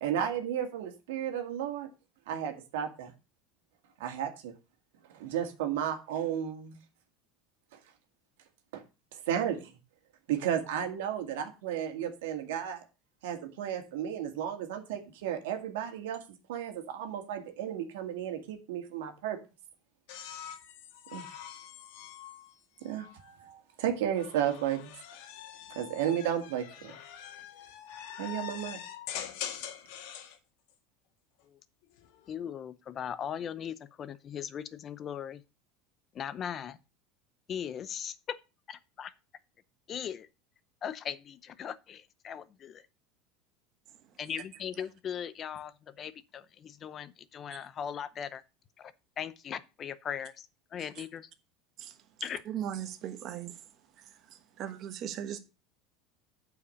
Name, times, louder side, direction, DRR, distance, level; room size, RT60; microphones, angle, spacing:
voice 1, 0.0-1.9 2.3-3.1 4.0-4.5 5.1-6.8 7.7-7.8 8.7-8.8 9.1-9.7 10.3-12.8 13.2-16.2 16.5-19.4 21.1-21.3 22.8-24.9 25.7-27.0 28.2-28.8, right 10 dB, 85° right, 1.9 m, -33 dB
sound 1, 20.1-23.4 24.2-30.4 31.8-32.4, left 10 dB, 65° left, 1.6 m, -44 dB
voice 2, 32.3-35.4 36.1-36.8 37.5-38.4 38.7-39.1 39.9-40.3 40.8-42.8 44.2-48.4 48.8-48.9 49.2-50.5 50.7-51.3 52.2-52.4, left 8 dB, 30° left, 0.7 m, -39 dB
voice 3, 52.5-53.6 54.0-55.4, right 10 dB, 40° right, 1.2 m, -39 dB
8.5 x 4.9 x 6.5 m
supercardioid pair, 150°, 0 cm